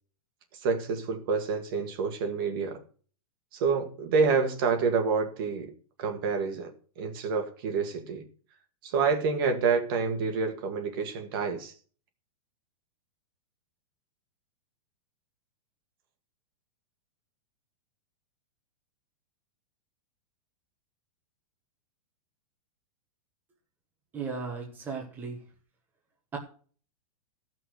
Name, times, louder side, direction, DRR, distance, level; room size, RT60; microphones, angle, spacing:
voice 1, 0.5-2.8 3.5-5.7 6.0-8.2 8.8-11.7, right 5 dB, 40° right, 1.8 m, -28 dB
voice 2, 24.1-25.4 26.3-26.4, right 5 dB, 10° right, 1.3 m, -36 dB
15.0 x 6.1 x 6.5 m
supercardioid pair, 175°, 18 cm